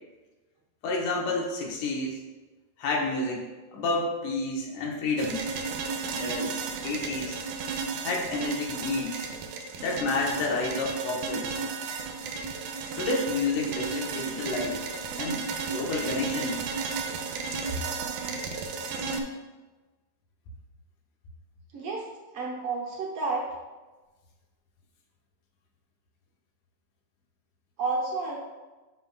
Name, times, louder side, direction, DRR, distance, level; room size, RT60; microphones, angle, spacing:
voice 1, 0.8-2.3 2.8-3.4 3.7-5.4 6.1-7.4 8.0-9.3 9.8-11.6 13.0-14.8 15.1-16.7, left 3 dB, 80° left, -1 dB, 2.8 m, -30 dB
sound 1, 5.2-19.2, right 5 dB, 80° right, 2.2 m, -33 dB
voice 2, 21.7-22.1 22.3-23.5 27.8-28.4, right 3 dB, 60° right, -2 dB, 1.7 m, -30 dB
12.0 x 5.4 x 2.3 m, 1.2 s
omnidirectional pair, 3.6 m